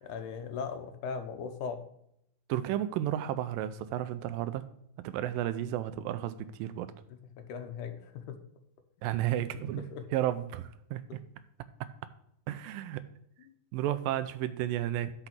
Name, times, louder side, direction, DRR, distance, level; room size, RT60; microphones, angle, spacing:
voice 1, 0.0-1.8 7.4-8.4 9.8-10.1 11.1-11.2, left 6 dB, 70° left, 7 dB, 2.0 m, -38 dB
voice 2, 2.5-4.6 5.0-6.9 9.0-9.8 10.1-11.2 12.5-13.0 13.7-15.1, right 12 dB, 80° right, 13 dB, 2.2 m, -32 dB
6.6 x 6.0 x 5.9 m, 0.74 s
omnidirectional pair, 4.2 m